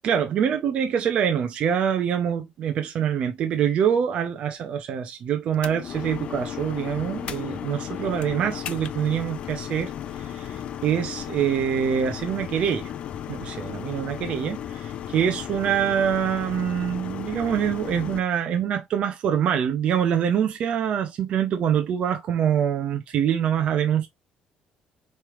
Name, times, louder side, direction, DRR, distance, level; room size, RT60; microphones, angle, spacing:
voice 1, 0.0-9.9 10.2-12.9 13.3-24.1, right 8 dB, 50° right, 0.7 m, -25 dB
sound 1, 5.5-18.2, left 10 dB, 45° left, 0.5 m, -35 dB
4.6 x 3.3 x 3.1 m
cardioid pair, 165°, 3 cm